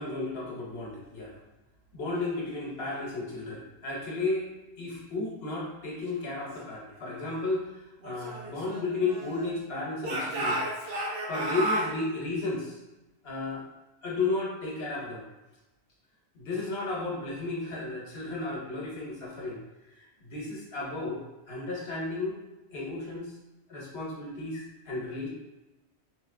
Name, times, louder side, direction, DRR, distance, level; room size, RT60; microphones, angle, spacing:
voice 1, 0.0-1.4 1.9-4.5 4.8-10.6 11.3-12.8 13.2-13.6 14.0-15.2 16.3-19.6 20.0-22.4 22.7-23.3 23.7-25.3, left 3 dB, 65° left, -3 dB, 1.0 m, -33 dB
Speech / Shout, 8.0-9.6 10.0-11.9, right 1 dB, 65° right, 0.9 m, -32 dB
3.5 x 2.7 x 2.4 m, 1.0 s
omnidirectional pair, 1.1 m